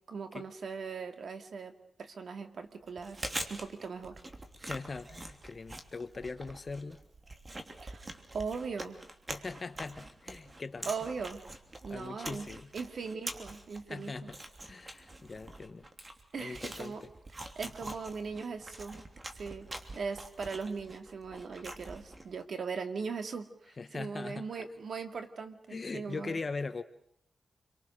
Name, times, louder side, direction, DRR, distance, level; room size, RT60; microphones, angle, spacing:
voice 1, 0.1-3.2 3.5-4.2 7.8-8.0 8.3-9.0 10.9-11.4 11.8-12.5 12.7-14.3 16.3-17.0 17.6-19.0 19.3-19.7 19.9-26.4, right 5 dB, 75° right, 7 dB, 2.4 m, -39 dB
Chewing mastication, 2.9-22.4, right 1 dB, 30° right, 3.0 m, -45 dB
voice 2, 4.6-7.0 9.3-10.9 11.9-12.7 13.9-14.4 14.7-15.9 16.4-16.9 23.8-24.5 25.7-26.8, left 4 dB, 40° left, 10 dB, 1.2 m, -40 dB
29.0 x 23.5 x 6.7 m, 0.68 s
wide cardioid pair, 90°, 0 cm